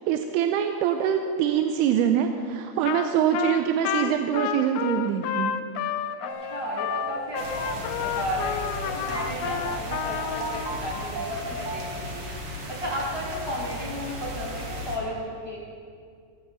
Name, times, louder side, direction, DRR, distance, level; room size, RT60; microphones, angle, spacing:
voice 1, 0.1-5.5, right 9 dB, 80° right, 6 dB, 2.4 m, -24 dB
Trumpet, 2.9-3.1 3.3-10.7, left 11 dB, 90° left, 2.9 m, -30 dB
voice 2, 6.2-12.3 12.7-15.6, equal, 30° left, -5 dB, 0.4 m, -34 dB
sound 1, 6.3-11.8, right 3 dB, 65° right, 2.4 m, -37 dB
sound 2, 7.4-15.0, equal, 50° right, 1.9 m, -36 dB
18.5 x 14.5 x 4.1 m, 2.2 s
omnidirectional pair, 5.0 m